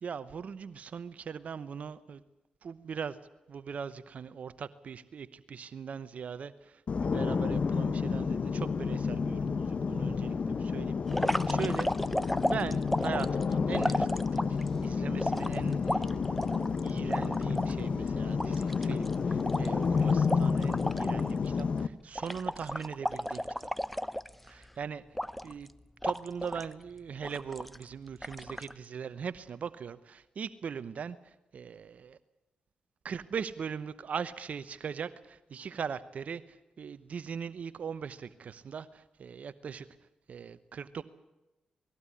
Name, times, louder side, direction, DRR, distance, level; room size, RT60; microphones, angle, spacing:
voice 1, 0.0-2.2 2.6-3.2 3.5-6.5 7.0-11.9 12.4-23.7 24.5-25.0 25.4-25.7 26.0-31.2 31.5-32.2 33.0-36.4 36.8-39.9 40.3-41.0, right 6 dB, 60° right, 15 dB, 0.9 m, -40 dB
sound 1, 6.9-21.9, left 5 dB, 55° left, 1.0 m, -30 dB
sound 2, 11.1-14.7 15.2-17.7 18.1-18.2 18.4-21.3 21.6-21.8 22.1-24.6 25.1-25.7 26.0-26.7 27.2-27.8 28.2-28.7, equal, 5° left, 0.8 m, -34 dB
20.0 x 15.5 x 9.8 m, 1.0 s
cardioid pair, 60°, 3 cm